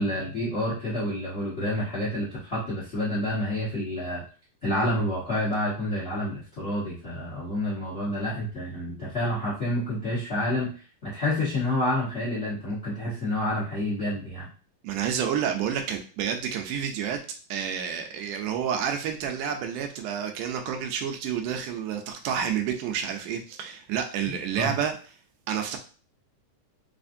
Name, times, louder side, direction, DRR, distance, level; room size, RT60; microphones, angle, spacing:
voice 1, 0.0-4.2 4.6-10.7 11.0-14.5 24.6-24.7, left 1 dB, 45° left, -7 dB, 0.8 m, -28 dB
voice 2, 14.8-17.2 17.5-25.0 25.5-25.8, right 8 dB, 80° right, 4 dB, 2.1 m, -29 dB
4.9 x 2.5 x 2.6 m, 0.38 s
omnidirectional pair, 3.7 m